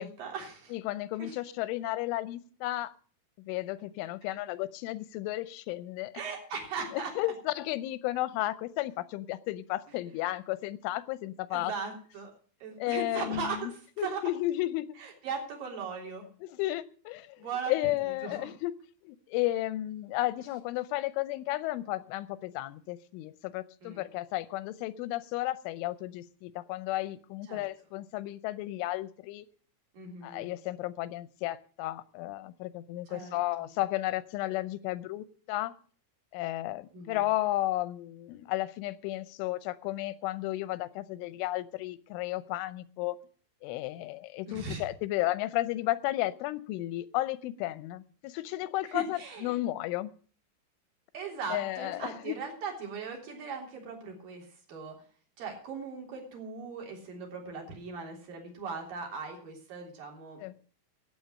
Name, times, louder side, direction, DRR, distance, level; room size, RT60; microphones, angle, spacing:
voice 1, 0.0-0.7 1.2-1.3 6.1-7.1 11.5-12.3 12.6-14.2 15.0-16.3 17.4-17.7 18.2-18.5 23.8-24.1 27.5-27.6 29.9-30.5 33.1-33.4 36.9-37.2 44.5-44.8 48.9-49.5 51.1-54.9 55.4-60.4, right 5 dB, 50° right, 0 dB, 4.8 m, -39 dB
voice 2, 0.7-2.9 3.4-6.1 6.9-11.7 12.8-13.7 14.0-15.0 16.4-18.7 19.0-29.5 30.2-35.7 36.3-43.2 43.6-50.1 51.5-52.4 60.4-60.5, left 16 dB, 90° left, 15 dB, 3.2 m, -33 dB
15.0 x 9.2 x 6.4 m, 0.43 s
omnidirectional pair, 5.4 m